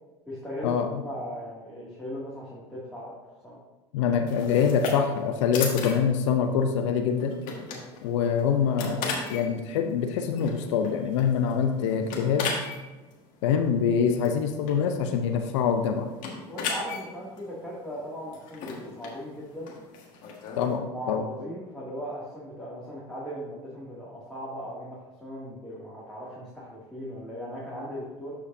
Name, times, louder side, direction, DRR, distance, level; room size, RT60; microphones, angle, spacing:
voice 1, 0.3-3.1 3.4-3.6 7.7-7.9 16.4-19.8 20.6-28.4, equal, ahead, -8 dB, 2.3 m, -38 dB
voice 2, 3.9-7.4 8.0-12.5 13.4-16.1 20.6-21.2, left 7 dB, 80° left, 6 dB, 0.6 m, -25 dB
sound 1, 4.3-20.8, left 5 dB, 60° left, 1.7 m, -38 dB
11.5 x 4.9 x 2.7 m, 1.2 s
hypercardioid pair, 85°, 15 cm